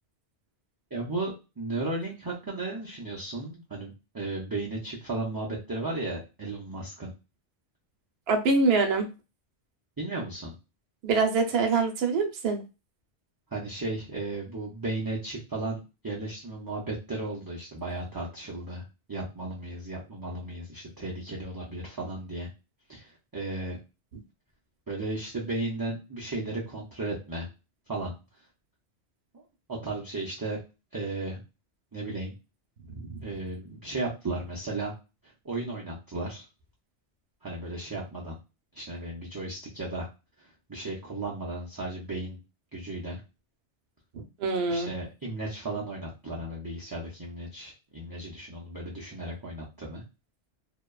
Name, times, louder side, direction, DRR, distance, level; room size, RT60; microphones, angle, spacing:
voice 1, 0.9-7.1 10.0-10.5 13.5-18.8 19.1-22.5 22.9-23.8 24.9-27.5 27.9-28.1 29.7-30.6 30.9-31.4 31.9-32.3 33.2-34.9 35.4-36.4 37.4-38.4 38.7-40.1 40.4-42.4 42.7-43.2 44.7-50.0, right 2 dB, 35° right, -5 dB, 0.4 m, -35 dB
voice 2, 8.3-9.1 11.0-12.6 32.9-33.2 44.4-44.9, right 4 dB, 65° right, 3 dB, 0.8 m, -25 dB
2.7 x 2.2 x 2.2 m, 0.28 s
omnidirectional pair, 1.2 m